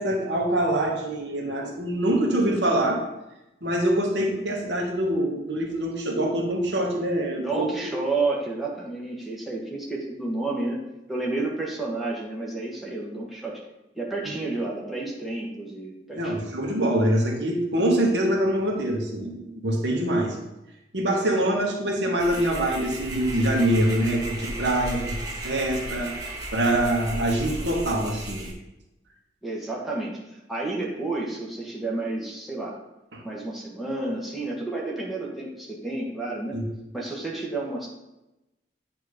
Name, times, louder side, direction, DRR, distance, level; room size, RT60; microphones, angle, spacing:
voice 1, 0.0-3.0 3.6-7.7 14.2-14.3 16.2-20.4 20.9-25.1 25.4-28.5 33.1-33.2 36.5-36.7, right 1 dB, 70° right, 1 dB, 1.2 m, -24 dB
voice 2, 7.4-10.8 11.1-13.6 13.9-16.4 29.4-32.8 33.2-36.6 36.9-37.9, right 2 dB, ahead, -5 dB, 1.3 m, -30 dB
sound 1, 22.2-28.5, right 1 dB, 20° right, 1.3 m, -35 dB
8.6 x 2.9 x 5.0 m, 0.95 s
head